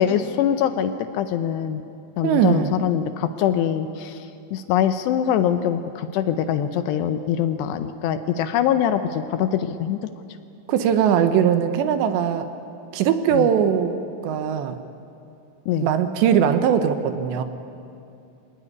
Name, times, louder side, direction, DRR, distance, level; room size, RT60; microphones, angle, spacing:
voice 1, 0.0-1.8 2.2-10.0 13.3-13.5 15.7-15.9, left 9 dB, 85° left, 9 dB, 2.4 m, -23 dB
voice 2, 2.2-2.8 10.7-12.5 12.9-14.0 14.2-14.8 15.8-17.4, right 8 dB, 75° right, 8 dB, 2.9 m, -20 dB
25.5 x 18.5 x 9.7 m, 2.6 s
omnidirectional pair, 5.9 m